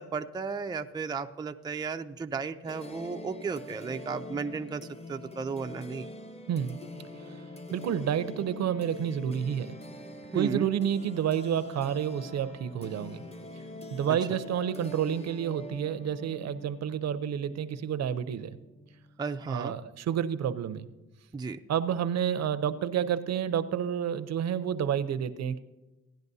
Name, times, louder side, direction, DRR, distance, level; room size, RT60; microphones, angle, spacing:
voice 1, 0.0-4.8 5.1-6.1 10.3-10.7 14.3-14.4 19.2-19.8 21.3-21.6, right 5 dB, 15° right, 6 dB, 0.4 m, -34 dB
sound 1, 2.6-19.2, left 1 dB, 20° left, 0.9 m, -45 dB
voice 2, 7.7-9.7 10.3-13.2 13.9-18.6 19.5-20.9 21.7-25.6, right 9 dB, 60° right, 13 dB, 0.6 m, -29 dB
17.0 x 10.5 x 2.7 m, 1.1 s
cardioid pair, 90°, 30 cm